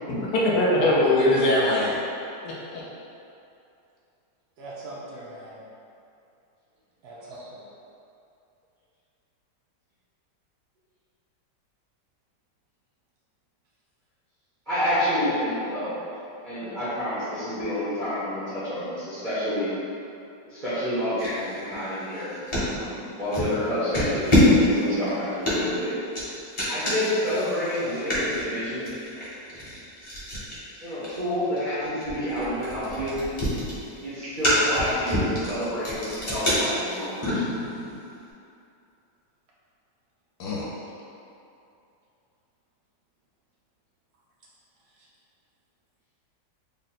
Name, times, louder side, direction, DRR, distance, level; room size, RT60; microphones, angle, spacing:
voice 1, 0.1-2.0 2.4-2.8 40.4-40.7, left 1 dB, 70° left, -5 dB, 1.2 m, -22 dB
voice 2, 4.6-5.7 7.0-7.6 24.7-25.0 34.2-34.4 44.9-45.1, right 2 dB, 70° right, -6 dB, 1.1 m, -42 dB
voice 3, 14.7-16.0 16.4-19.7 20.5-22.3 22.6-25.9 26.7-28.9 30.8-33.2 34.0-37.4, left 1 dB, 40° right, -13 dB, 0.7 m, -29 dB
sound 1, 21.2-22.7 23.3-23.6 23.9-37.9, left 1 dB, 30° left, 0.6 m, -27 dB
3.7 x 2.1 x 4.1 m, 2.6 s
omnidirectional pair, 1.9 m